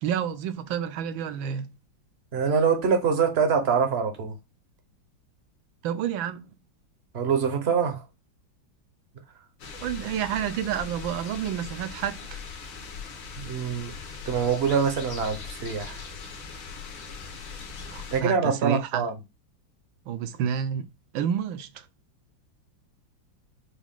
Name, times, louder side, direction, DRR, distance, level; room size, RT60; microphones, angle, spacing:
voice 1, 0.0-1.7 5.8-6.5 9.8-12.4 17.9-19.1 20.1-20.9 21.1-21.8, right 9 dB, 80° right, 1.4 m, -29 dB
voice 2, 2.3-4.4 7.1-8.0 13.4-13.9 14.3-16.0 18.1-19.2, right 6 dB, 50° right, 0.8 m, -24 dB
sound 1, 9.6-18.2, left 5 dB, 70° left, 1.6 m, -40 dB
6.1 x 2.3 x 3.6 m
omnidirectional pair, 2.2 m